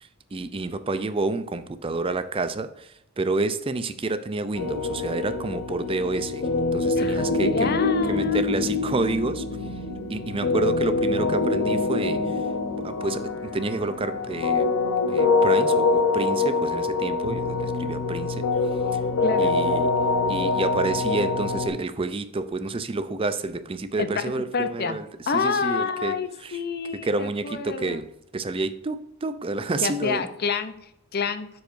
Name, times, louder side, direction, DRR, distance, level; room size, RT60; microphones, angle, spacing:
voice 1, 0.0-7.7 8.1-9.5 10.1-12.4 12.8-14.7 15.1-18.5 18.9-19.0 19.4-19.9 20.3-25.0 25.3-26.6 27.0-30.3, right 3 dB, 25° right, 11 dB, 0.4 m, -29 dB
sound 1, 4.6-21.7, left 3 dB, 90° left, 0.8 m, -24 dB
voice 2, 7.0-8.4 19.2-19.6 24.0-25.0 25.3-28.0 29.8-31.5, left 5 dB, 50° left, 10 dB, 0.6 m, -28 dB
11.0 x 4.7 x 2.6 m, 0.81 s
head